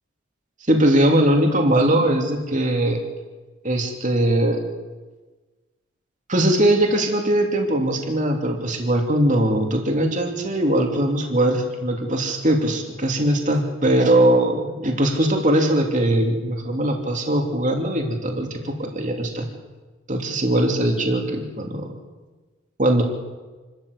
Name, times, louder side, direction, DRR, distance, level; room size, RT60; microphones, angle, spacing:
voice 1, 0.7-3.0 3.6-4.6 6.3-19.5 20.1-21.9 22.8-23.0, right 1 dB, 35° right, 2 dB, 2.9 m, -20 dB
28.5 x 13.5 x 8.3 m, 1.3 s
head